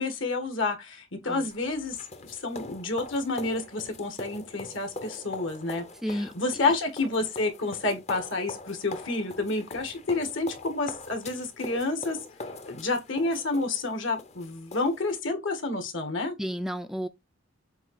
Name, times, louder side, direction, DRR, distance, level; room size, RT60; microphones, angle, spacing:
voice 1, 0.0-2.0 2.2-12.2 12.7-16.3, left 3 dB, 70° left, 1.9 m, -29 dB
sound 1, 1.5-15.2, left 3 dB, 30° left, 0.7 m, -43 dB
voice 2, 16.4-17.1, equal, ahead, 0.3 m, -31 dB
8.0 x 2.8 x 4.9 m
head